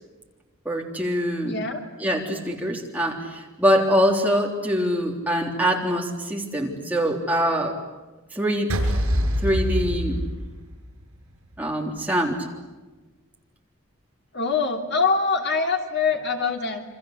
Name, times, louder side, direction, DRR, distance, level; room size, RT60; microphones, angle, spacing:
voice 1, 0.7-1.6 2.0-7.8 8.3-8.8 9.4-10.2 11.6-12.5, equal, 5° right, 0 dB, 3.6 m, -24 dB
voice 2, 1.4-1.8 14.3-16.8, left 4 dB, 50° left, 3 dB, 3.0 m, -24 dB
sound 1, 8.7-11.0, equal, 80° right, 7.1 m, -24 dB
28.5 x 25.5 x 8.0 m, 1.2 s
head